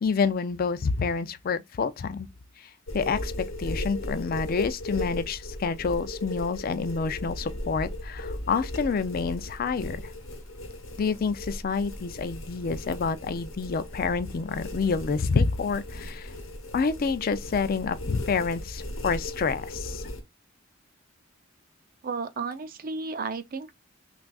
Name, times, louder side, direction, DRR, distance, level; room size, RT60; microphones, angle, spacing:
voice 1, 0.0-2.3 2.6-3.3 3.6-10.1 11.0-16.3 16.7-20.1, left 5 dB, 45° left, 0.4 m, -28 dB
sound 1, 2.9-20.2, left 1 dB, 80° left, 0.9 m, -37 dB
voice 2, 22.0-23.7, right 4 dB, 45° right, 0.5 m, -33 dB
5.9 x 2.4 x 2.3 m
head